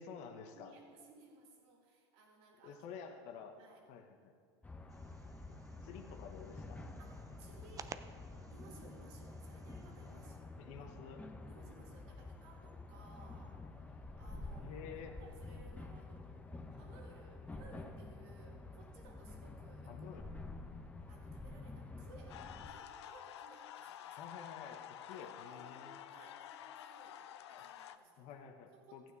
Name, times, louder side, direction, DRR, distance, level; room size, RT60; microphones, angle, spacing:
voice 1, 0.0-0.7 2.6-3.5 3.9-4.3 5.5-6.8 10.6-11.2 14.6-15.2 19.9-20.3 24.2-26.0 28.2-29.1, left 6 dB, 55° left, 4 dB, 1.1 m, -50 dB
voice 2, 0.5-3.3 3.6-3.9 7.0-8.1 8.5-16.4 16.7-20.2 21.1-24.3 25.1-29.1, right 3 dB, 65° right, 0 dB, 2.5 m, -61 dB
sound 1, 4.6-22.7, left 2 dB, 10° left, 0.9 m, -49 dB
sound 2, 4.9-10.4, right 6 dB, 25° right, 0.5 m, -55 dB
sound 3, 22.3-28.0, left 10 dB, 80° left, 0.6 m, -50 dB
15.0 x 9.0 x 4.1 m, 2.1 s
hypercardioid pair, 95°, 14 cm